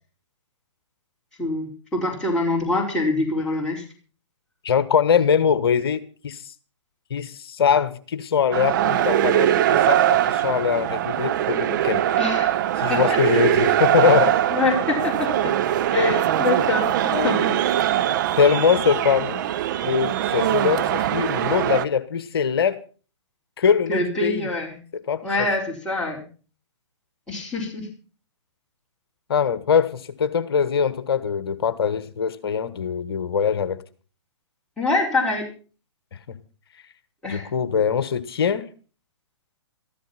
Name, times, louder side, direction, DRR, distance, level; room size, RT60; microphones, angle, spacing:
voice 1, 1.4-3.8 12.2-12.5 12.9-13.2 14.5-15.5 15.9-17.6 23.9-24.8 25.2-26.2 27.3-27.9 34.8-35.5 37.2-37.5, left 2 dB, 5° left, 4.5 m, -25 dB
voice 2, 4.6-6.5 7.1-12.0 12.8-14.4 17.1-17.3 18.4-19.4 19.8-22.8 23.6-24.5 25.1-25.2 29.3-33.8 37.3-38.7, left 7 dB, 55° left, 1.4 m, -22 dB
sound 1, 8.5-21.8, right 11 dB, 40° right, 0.9 m, -22 dB
14.5 x 14.5 x 5.7 m
figure-of-eight pair, 120°, 15 cm